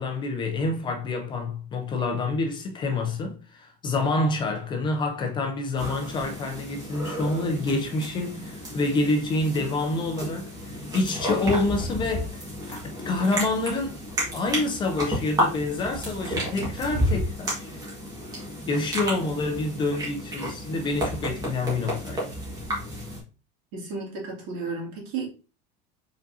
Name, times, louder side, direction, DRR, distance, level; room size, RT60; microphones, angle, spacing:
voice 1, 0.0-12.4 12.7-14.0 14.3-17.8 18.7-22.3, left 2 dB, 25° left, 0.5 m, -27 dB
sound 1, 5.8-23.2, equal, 20° right, 1.7 m, -32 dB
voice 2, 23.7-25.3, right 4 dB, 65° right, 2.4 m, -33 dB
5.0 x 3.9 x 2.7 m
cardioid pair, 170°, 20 cm